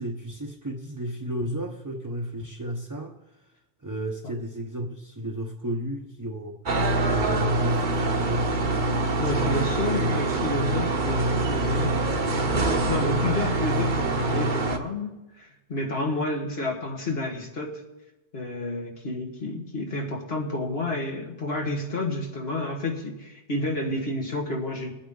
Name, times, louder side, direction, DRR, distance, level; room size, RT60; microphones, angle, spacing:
voice 1, 0.0-3.1 3.8-6.6 7.1-8.6, right 1 dB, 20° right, 1 dB, 0.8 m, -33 dB
sound 1, 6.7-14.8, right 2 dB, 50° right, 1.2 m, -25 dB
voice 2, 9.0-12.5 12.9-17.8 18.3-24.9, left 2 dB, 70° left, -1 dB, 2.0 m, -30 dB
21.0 x 8.6 x 3.9 m, 1.0 s
omnidirectional pair, 1.1 m